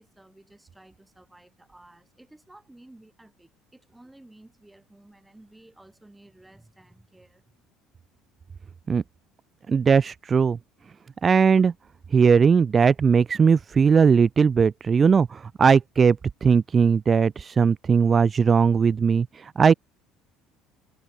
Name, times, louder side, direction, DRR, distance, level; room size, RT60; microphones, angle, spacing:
voice 1, 0.0-7.4, right 1 dB, 5° right, 7.8 m, -53 dB
voice 2, 9.7-10.6 11.2-11.7 12.1-19.7, right 6 dB, 25° right, 0.4 m, -19 dB
cardioid pair, 140°, 0 cm